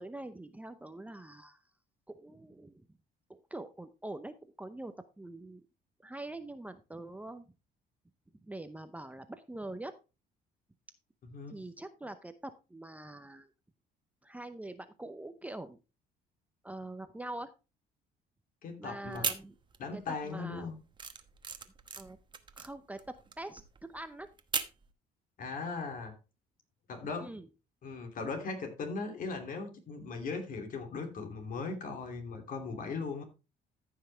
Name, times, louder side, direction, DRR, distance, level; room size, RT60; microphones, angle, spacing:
voice 1, 0.0-1.6 2.1-2.9 3.3-5.6 6.0-7.4 8.4-9.9 11.5-13.5 14.2-15.8 16.6-17.5 18.8-19.5 19.9-20.7 22.0-22.2 22.6-24.3 27.2-27.5, right 2 dB, 10° right, 0.7 m, -44 dB
voice 2, 11.3-11.6 18.6-19.3 19.8-20.7 25.4-26.1 26.9-27.4 27.8-33.2, left 4 dB, 55° left, 2.9 m, -38 dB
sound 1, 19.1-20.0 20.3-24.9, right 5 dB, 25° right, 1.1 m, -38 dB
14.5 x 5.8 x 3.3 m
cardioid pair, 110°, 17 cm